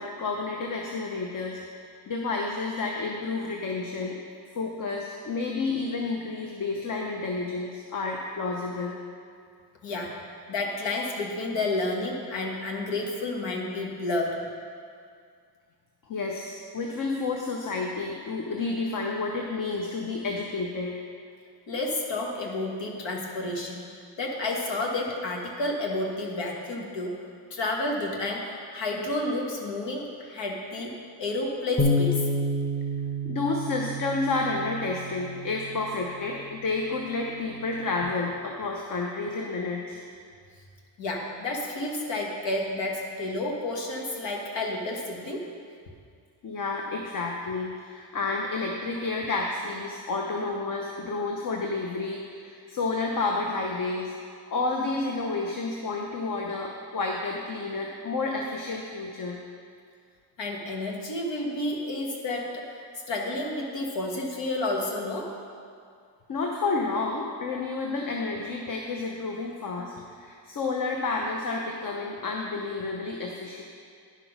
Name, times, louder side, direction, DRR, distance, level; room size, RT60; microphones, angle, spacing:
voice 1, 0.0-4.2 4.6-9.0 16.1-21.0 33.2-40.0 46.4-54.2 54.5-59.4 66.3-73.6, left 3 dB, 50° left, 0 dB, 0.8 m, -30 dB
voice 2, 9.8-10.2 10.5-14.4 21.7-23.8 24.2-27.2 27.5-32.3 41.0-45.4 60.4-65.4, left 2 dB, 85° left, 0 dB, 1.6 m, -30 dB
Bass guitar, 31.8-38.0, left 1 dB, 15° left, 0.7 m, -30 dB
10.5 x 6.0 x 5.9 m, 2.2 s
wide cardioid pair, 165°, 43 cm